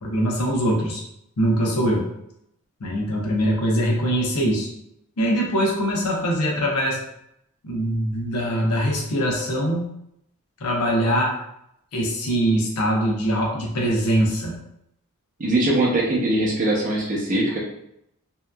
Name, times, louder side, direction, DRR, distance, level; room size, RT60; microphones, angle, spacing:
voice 1, 0.0-1.0 1.4-2.1 2.8-4.7 5.2-7.0 7.6-9.9 10.6-11.4 11.9-14.6, equal, 85° left, -2 dB, 0.7 m, -22 dB
voice 2, 15.4-17.6, right 1 dB, 35° right, -3 dB, 0.6 m, -21 dB
2.8 x 2.4 x 2.2 m, 0.78 s
head